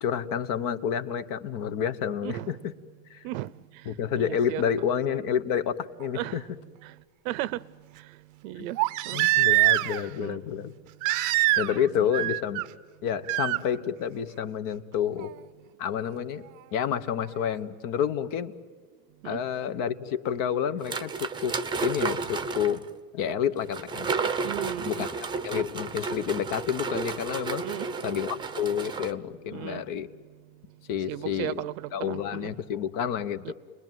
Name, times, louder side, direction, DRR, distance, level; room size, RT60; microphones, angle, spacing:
voice 1, 0.0-2.5 3.1-3.3 3.8-6.4 8.6-8.7 9.1-10.7 11.6-12.6 13.0-15.3 15.8-16.4 16.7-18.5 19.2-21.6 21.8-22.8 23.1-24.1 24.9-25.1 25.4-27.6 28.0-30.1 30.9-31.6 31.9-33.5, left 8 dB, 50° left, 1.3 m, -29 dB
voice 2, 2.2-2.6 3.2-3.5 4.1-4.9 6.1-6.4 6.8-6.9 7.2-7.7 8.0-8.1 8.4-8.8 9.0-9.2 10.2-10.4 12.0-12.3 19.2-19.4 24.4-25.1 27.6-27.9 29.5-29.8 31.1-32.5 33.4-33.5, right 15 dB, 75° right, 0.8 m, -35 dB
Crying sobbing, 6.0-6.1 8.8-10.1 11.0-11.9 12.1-12.6 13.3-13.6 15.2-15.3, right 18 dB, 45° right, 0.7 m, -24 dB
sound 1, 20.8-22.8 23.7-29.1, right 4 dB, 10° right, 0.8 m, -32 dB
30.0 x 21.0 x 9.3 m
supercardioid pair, 140°, 41 cm